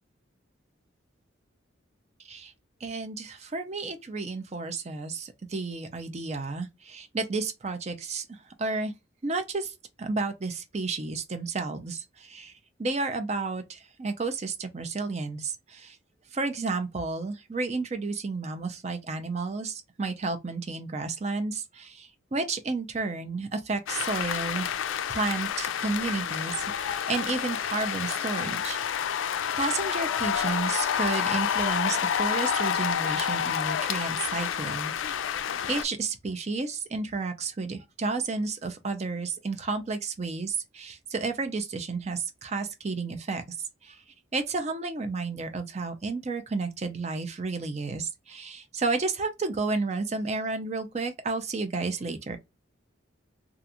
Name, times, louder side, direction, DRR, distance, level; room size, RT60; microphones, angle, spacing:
voice 1, 2.2-2.5 2.8-8.9 9.2-12.5 12.8-16.0 16.3-24.7 25.1-28.8 29.3-35.4 35.7-44.0 44.3-52.4, right 3 dB, 35° right, 0.4 m, -32 dB
sound 1, 23.9-35.8, left 8 dB, 80° left, 0.3 m, -29 dB
2.4 x 2.3 x 2.7 m
head